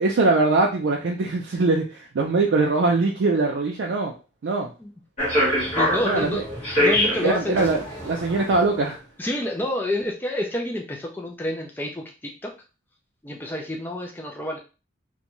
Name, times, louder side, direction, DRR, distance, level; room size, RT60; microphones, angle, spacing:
voice 1, 0.0-4.1 4.4-4.7 6.0-6.4 7.2-9.0, right 3 dB, 85° right, 0 dB, 0.4 m, -22 dB
sound 1, 5.2-8.6, left 1 dB, 35° left, 1.3 m, -24 dB
voice 2, 5.7-6.5 6.8-7.7 9.2-12.5 13.2-14.6, left 1 dB, 10° left, 0 dB, 0.3 m, -29 dB
2.5 x 2.2 x 2.9 m, 0.32 s
head